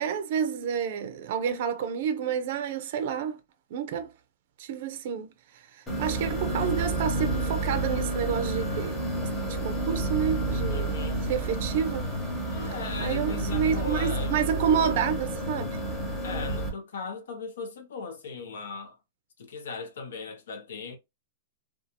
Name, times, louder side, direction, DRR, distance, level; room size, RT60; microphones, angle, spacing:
voice 1, 0.0-3.4 3.7-4.1 4.6-5.3 5.8-9.2 9.5-12.1 13.0-15.8, right 7 dB, 50° right, 0.4 m, -29 dB
sound 1, 5.9-16.7, right 2 dB, 5° left, 0.8 m, -30 dB
voice 2, 10.7-11.2 12.4-14.5 16.2-19.0 19.4-21.0, left 4 dB, 80° left, 0.9 m, -38 dB
2.5 x 2.3 x 2.8 m
supercardioid pair, 170°, 0 cm